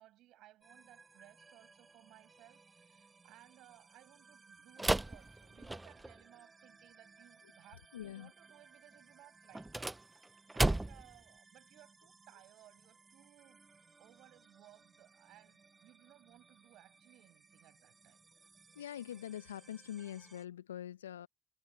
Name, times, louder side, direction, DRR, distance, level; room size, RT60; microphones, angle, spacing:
voice 1, 0.0-13.6 14.0-18.2, right 15 dB, 65° right, 7.7 m, -62 dB
sound 1, 0.6-20.5, right 4 dB, 35° right, 5.2 m, -63 dB
sound 2, 4.8-6.2 9.5-11.2, right 2 dB, 15° right, 0.6 m, -34 dB
voice 2, 7.9-8.3 18.8-21.3, left 11 dB, 85° left, 1.3 m, -44 dB
figure-of-eight pair, 45°, 0 cm